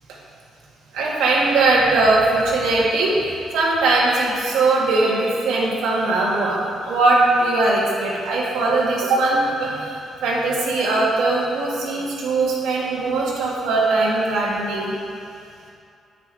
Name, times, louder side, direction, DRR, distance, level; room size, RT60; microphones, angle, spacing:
voice 1, 0.9-14.9, right 2 dB, 90° right, -5 dB, 1.7 m, -20 dB
7.9 x 6.0 x 4.5 m, 2.5 s
cardioid pair, 90°, 0 cm